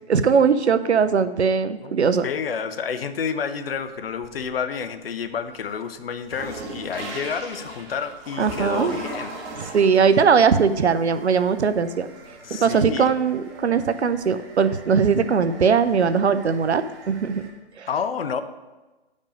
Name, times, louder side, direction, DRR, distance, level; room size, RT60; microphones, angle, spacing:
voice 1, 0.1-2.2 8.4-8.9 9.6-12.1 12.6-17.4 17.8-17.9, right 6 dB, 85° right, 12 dB, 0.7 m, -20 dB
voice 2, 2.2-9.8 12.4-13.1 17.9-18.4, left 6 dB, 60° left, 10 dB, 0.8 m, -30 dB
sound 1, 3.8-4.7 5.2-17.5, right 2 dB, 25° right, 1.5 m, -40 dB
8.3 x 5.3 x 5.2 m, 1.2 s
hypercardioid pair, 140°, 32 cm